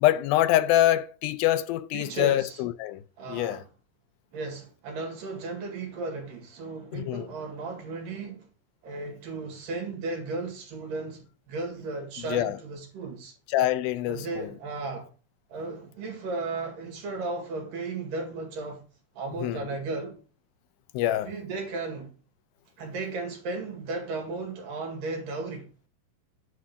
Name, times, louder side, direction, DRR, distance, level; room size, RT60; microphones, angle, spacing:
voice 1, 0.0-3.0 3.3-3.6 6.9-7.3 12.3-12.6 13.5-14.5 19.4-19.7 20.9-21.3, left 14 dB, 80° left, 2.3 m, -25 dB
voice 2, 1.9-2.6 3.2-3.7 4.3-8.5 8.8-13.3 14.1-15.1 15.5-18.8 19.2-20.2 21.2-22.1 22.8-25.7, right 3 dB, 65° right, 3.6 m, -35 dB
9.4 x 3.8 x 6.7 m
omnidirectional pair, 4.3 m